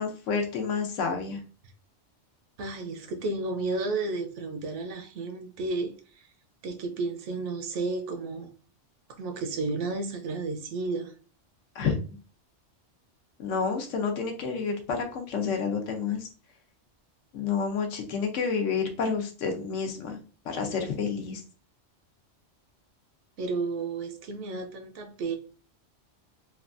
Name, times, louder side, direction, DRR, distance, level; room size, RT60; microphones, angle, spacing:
voice 1, 0.0-1.4 11.7-11.9 13.4-16.3 17.3-20.2 20.4-21.4, left 5 dB, 80° left, 1.0 m, -29 dB
voice 2, 2.6-5.9 6.6-8.5 9.1-11.1 23.4-25.3, right 3 dB, 75° right, 0.9 m, -32 dB
3.3 x 2.2 x 2.4 m
omnidirectional pair, 1.3 m